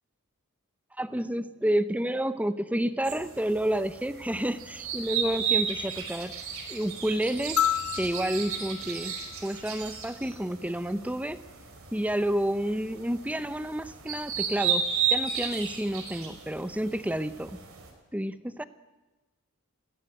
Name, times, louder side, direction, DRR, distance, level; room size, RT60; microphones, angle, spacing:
voice 1, 1.0-6.4 6.7-7.6 8.0-9.2 9.4-11.4 11.9-17.6 18.1-18.6, right 1 dB, 5° right, 12 dB, 0.8 m, -30 dB
sound 1, 3.0-17.9, right 6 dB, 75° right, 4.8 m, -34 dB
sound 2, 7.6-10.1 11.7-11.8, left 11 dB, 85° left, 1.4 m, -32 dB
20.5 x 17.0 x 7.9 m, 1.2 s
head